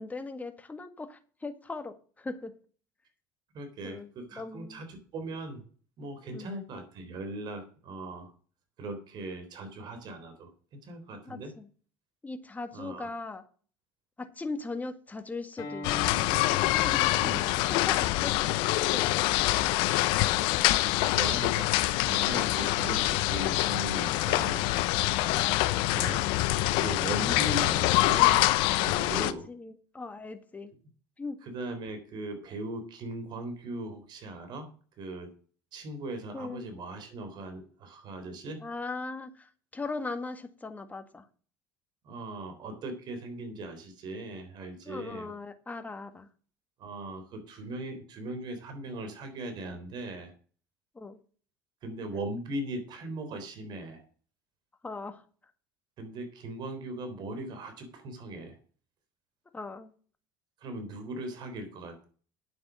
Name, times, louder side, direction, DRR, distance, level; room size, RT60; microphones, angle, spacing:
voice 1, 0.0-2.5 3.8-4.8 6.3-6.6 11.3-11.7 12.2-13.4 14.2-16.4 16.7-17.3 17.7-19.4 25.2-25.7 29.5-30.7 31.2-31.4 36.3-36.7 38.6-41.2 44.8-46.3 50.9-51.2 54.8-55.2 59.5-59.9, left 3 dB, 15° left, 8 dB, 1.8 m, -39 dB
voice 2, 3.5-5.6 6.0-8.3 8.8-11.5 12.7-13.1 17.2-17.5 19.3-19.5 19.9-20.2 20.6-21.7 22.0-24.7 25.9-26.3 26.8-29.5 31.4-34.7 35.0-35.3 35.7-38.6 42.0-45.3 46.8-50.3 51.8-54.0 56.0-58.6 60.6-62.0, right 2 dB, 55° right, 7 dB, 3.7 m, -39 dB
Acoustic guitar, 15.6-20.8, left 1 dB, 50° left, 3.9 m, -45 dB
sound 1, 15.8-29.3, left 17 dB, 75° left, 0.7 m, -25 dB
9.4 x 7.9 x 6.3 m, 0.42 s
supercardioid pair, 90°, 9 cm